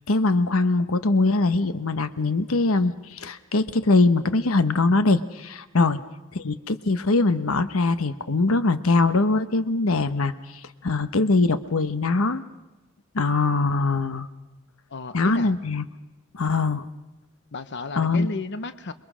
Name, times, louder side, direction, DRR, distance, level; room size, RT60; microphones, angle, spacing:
voice 1, 0.1-6.0 6.3-12.4 13.1-14.3 15.1-15.8 16.3-16.9 17.9-18.3, left 3 dB, 90° left, 12 dB, 1.1 m, -22 dB
voice 2, 14.9-15.5 17.5-18.9, left 3 dB, 55° left, 11 dB, 1.0 m, -33 dB
28.0 x 22.5 x 6.3 m, 1.1 s
head